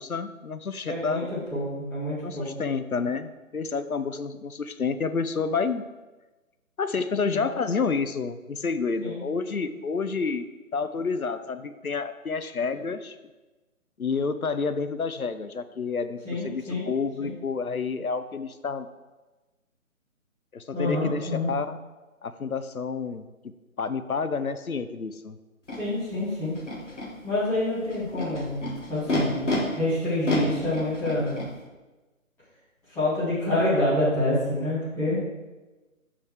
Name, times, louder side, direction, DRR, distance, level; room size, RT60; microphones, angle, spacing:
voice 1, 0.0-1.3 2.2-5.8 6.8-13.2 14.0-18.9 20.5-21.8 22.2-23.2 23.8-25.4, left 5 dB, 80° left, 11 dB, 0.7 m, -29 dB
voice 2, 0.8-2.5 7.2-7.4 9.0-9.2 16.2-16.8 17.2-17.3 20.7-21.5 25.8-26.5 27.2-31.3 32.9-35.2, left 1 dB, 5° left, -14 dB, 2.8 m, -27 dB
Animal, 25.7-25.8 26.5-27.1 27.9-29.6 30.2-31.5, left 2 dB, 55° left, 2.4 m, -30 dB
6.3 x 5.7 x 6.4 m, 1.2 s
figure-of-eight pair, 150°, 43 cm